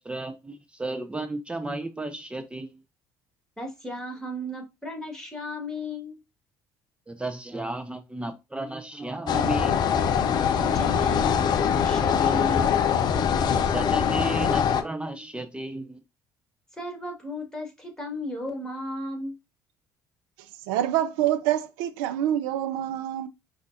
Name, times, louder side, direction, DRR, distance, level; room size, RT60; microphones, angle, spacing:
voice 1, 0.0-2.8 7.1-9.8 13.6-16.0, right 2 dB, 10° right, 0.5 m, -34 dB
voice 2, 3.6-6.2 10.6-12.7 16.8-19.4, left 1 dB, 5° left, 1.9 m, -35 dB
sound 1, 9.3-14.8, left 7 dB, 50° left, 0.5 m, -23 dB
voice 3, 20.7-23.3, right 12 dB, 75° right, 0.4 m, -26 dB
5.0 x 2.4 x 2.6 m
hypercardioid pair, 60°, 9 cm